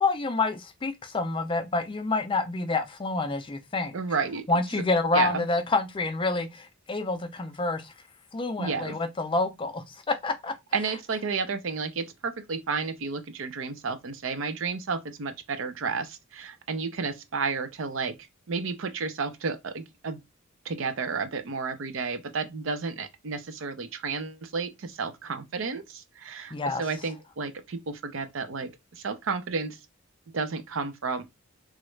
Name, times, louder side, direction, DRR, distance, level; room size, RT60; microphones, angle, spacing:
voice 1, 0.0-3.9 4.5-7.9 8.3-10.5 26.5-26.8, left 3 dB, 25° left, 0.4 m, -28 dB
voice 2, 3.9-4.4 4.7-4.8 5.1-5.5 8.6-9.0 10.7-18.1 18.5-20.2 20.6-29.8 30.3-31.2, right 4 dB, 65° right, 0.5 m, -32 dB
3.1 x 2.4 x 3.1 m
head